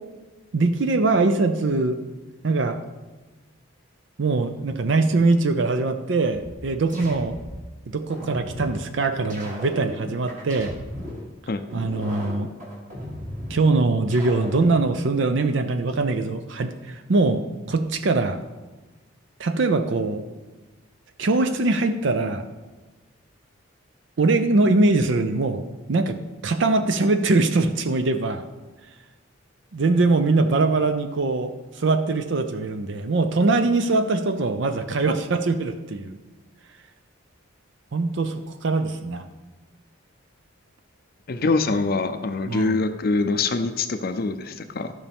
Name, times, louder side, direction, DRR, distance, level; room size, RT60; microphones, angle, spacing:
voice 1, 0.5-2.0 2.4-2.8 4.2-7.4 7.9-10.8 11.7-12.5 13.5-17.4 17.7-18.4 19.4-20.2 21.2-22.5 24.2-25.6 25.9-26.2 26.4-28.4 29.7-36.2 37.9-39.3 42.5-42.8, right 3 dB, 55° right, 8 dB, 0.5 m, -22 dB
sound 1, 6.3-7.6 8.1-8.8 9.3-11.2 11.7-13.6 14.1-14.8, equal, 35° right, 2.0 m, -36 dB
voice 2, 41.3-44.9, left 3 dB, 45° left, 8 dB, 0.5 m, -24 dB
13.5 x 5.5 x 3.5 m, 1.2 s
head